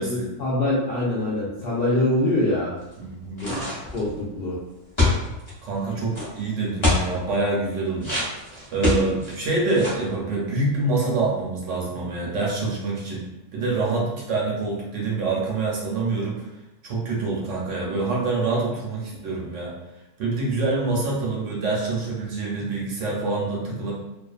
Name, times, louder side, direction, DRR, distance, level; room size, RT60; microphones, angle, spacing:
voice 1, 0.0-2.8 3.4-3.6 3.9-4.6, left 1 dB, 65° left, -7 dB, 0.5 m, -24 dB
voice 2, 3.0-3.6 5.6-8.1 8.7-13.2 13.5-16.5 16.8-19.7 20.2-23.9, right 3 dB, 65° right, -4 dB, 0.8 m, -26 dB
sound 1, 3.4-4.1 5.0-5.5 6.1-6.3 6.8-7.1 8.0-9.3 9.7-10.1, left 2 dB, 25° left, 0.7 m, -23 dB
2.4 x 2.3 x 2.3 m, 0.97 s
omnidirectional pair, 1.5 m